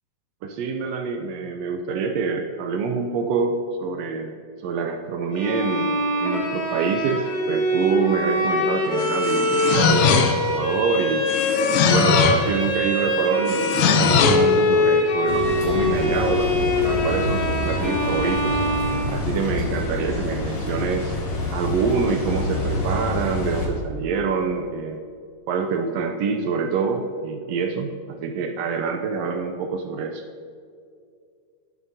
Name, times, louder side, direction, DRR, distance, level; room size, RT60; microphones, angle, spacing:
voice 1, 0.4-11.3 11.8-18.6 19.1-21.2 21.5-25.0 25.5-30.2, right 5 dB, 80° right, 5 dB, 1.4 m, -26 dB
Bowed string instrument, 5.3-19.6, left 1 dB, 40° left, 1.8 m, -23 dB
sound 1, 9.0-10.6 11.3-12.5 13.5-14.5, left 7 dB, 90° left, 2.2 m, -20 dB
sound 2, 15.3-23.7, left 2 dB, 60° left, 2.6 m, -27 dB
17.5 x 7.2 x 2.7 m, 2.3 s
omnidirectional pair, 3.5 m